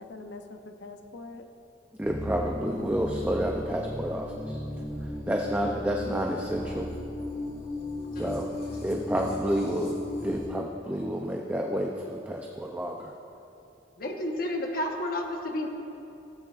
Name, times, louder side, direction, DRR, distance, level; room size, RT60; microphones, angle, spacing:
voice 1, 0.0-1.4 8.3-9.2, left 3 dB, 75° left, 6 dB, 0.7 m, -45 dB
sound 1, 2.0-10.5, left 1 dB, 35° left, 2.4 m, -36 dB
voice 2, 2.0-4.6 5.3-6.9 8.2-8.5 8.8-13.1, right 1 dB, 10° right, 1 dB, 0.4 m, -30 dB
voice 3, 14.0-15.7, left 1 dB, 55° left, 1 dB, 1.1 m, -31 dB
16.5 x 8.6 x 2.4 m, 2.8 s
head